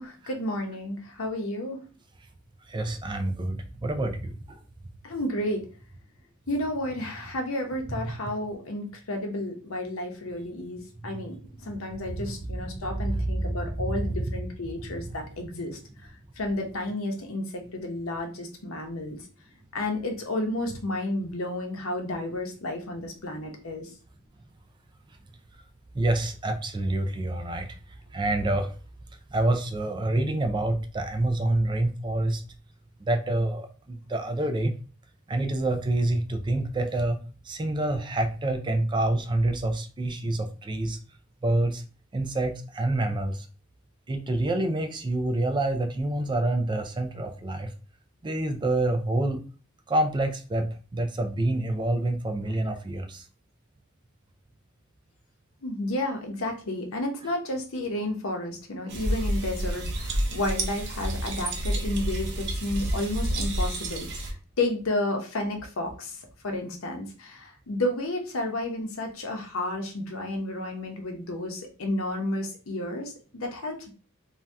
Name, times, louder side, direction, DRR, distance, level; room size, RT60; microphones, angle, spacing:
voice 1, 0.0-1.9 5.0-5.7 6.5-15.8 16.4-19.2 19.7-23.9 52.4-52.6 55.6-73.9, left 1 dB, 80° left, 3 dB, 0.8 m, -32 dB
voice 2, 2.7-4.6 12.3-12.4 13.0-13.1 13.5-13.6 25.9-27.7 28.1-28.7 29.3-32.4 33.1-34.7 35.3-37.2 37.5-41.0 41.4-41.8 42.1-43.5 44.1-47.7 48.2-49.4 49.9-53.2, right 2 dB, 20° right, 7 dB, 0.3 m, -27 dB
sound 1, 58.9-64.3, right 1 dB, 60° right, 0.6 m, -29 dB
2.7 x 2.2 x 3.3 m, 0.37 s
head